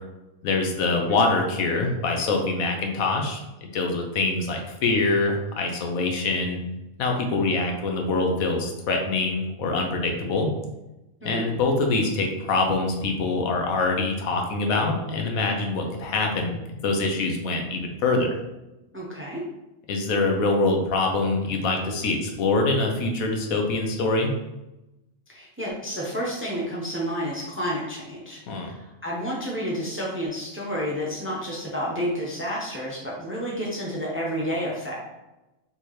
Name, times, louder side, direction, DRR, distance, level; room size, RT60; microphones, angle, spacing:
voice 1, 0.4-6.6 7.0-10.5 11.2-16.5 16.8-18.3 19.9-24.3 28.5-28.7, left 3 dB, 80° left, 2 dB, 1.2 m, -24 dB
voice 2, 18.9-19.4 25.3-35.0, equal, 10° right, -4 dB, 0.7 m, -30 dB
4.2 x 3.5 x 3.2 m, 0.97 s
omnidirectional pair, 1.5 m